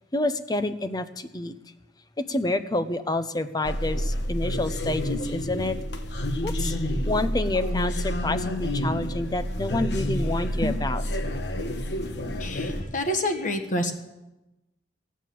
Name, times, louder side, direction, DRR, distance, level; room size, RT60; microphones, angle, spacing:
voice 1, 0.1-1.5 2.2-5.8 6.4-6.7 7.1-11.0, left 2 dB, 20° left, 11 dB, 0.7 m, -28 dB
sound 1, 3.6-12.8, equal, 70° left, 1.3 m, -29 dB
voice 2, 12.4-13.9, left 1 dB, 45° left, 6 dB, 1.5 m, -28 dB
17.0 x 9.3 x 7.7 m, 1.0 s
head